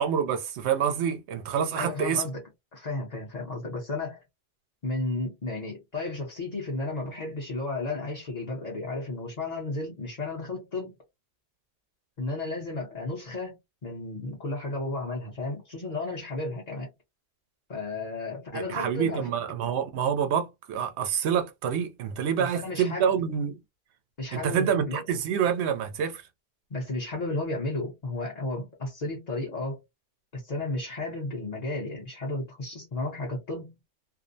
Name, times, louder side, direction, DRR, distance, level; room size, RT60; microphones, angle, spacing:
voice 1, 0.0-2.2 18.5-23.5 24.3-26.2, right 8 dB, 90° right, 0.9 m, -27 dB
voice 2, 1.8-2.4 2.7-4.2 4.8-10.9 12.2-16.9 17.7-19.3 22.4-23.2 24.2-25.0 26.7-29.8 30.3-33.8, left 2 dB, 40° left, 0.9 m, -33 dB
2.6 x 2.0 x 2.6 m
omnidirectional pair, 1.1 m